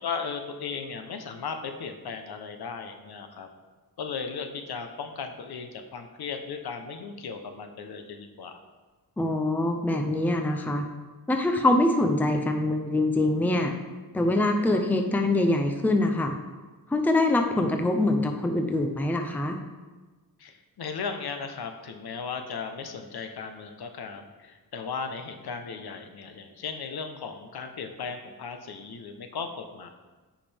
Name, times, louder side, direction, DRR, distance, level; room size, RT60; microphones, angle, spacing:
voice 1, 0.0-3.5 4.0-8.6 20.4-29.9, left 5 dB, 75° left, 6 dB, 0.9 m, -36 dB
voice 2, 9.2-10.9 11.3-13.7 14.1-16.4 16.9-19.6, left 2 dB, 5° left, 5 dB, 0.5 m, -24 dB
14.5 x 5.1 x 3.4 m, 1.3 s
wide cardioid pair, 170°, 38 cm